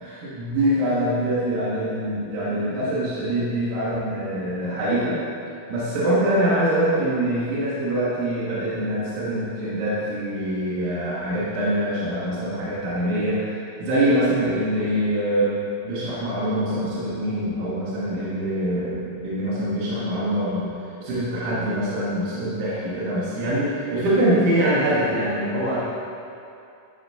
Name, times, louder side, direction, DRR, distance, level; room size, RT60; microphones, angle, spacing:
voice 1, 0.0-5.2 5.7-15.6 15.8-20.7 21.0-25.8, right 1 dB, 80° right, -8 dB, 2.7 m, -24 dB
10.0 x 8.0 x 2.7 m, 2.6 s
omnidirectional pair, 3.5 m